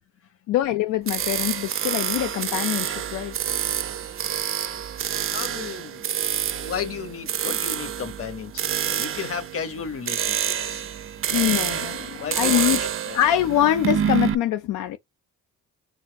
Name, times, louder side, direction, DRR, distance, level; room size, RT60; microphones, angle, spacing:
voice 1, 0.5-3.3 11.3-12.8 13.1-15.0, left 12 dB, 80° left, 0.6 m, -24 dB
sound 1, 1.1-14.3, right 9 dB, 45° right, 0.6 m, -27 dB
voice 2, 5.3-6.0 6.6-10.8 12.2-13.2, left 6 dB, 50° left, 1.2 m, -34 dB
4.2 x 2.5 x 4.6 m
cardioid pair, 90°, 30 cm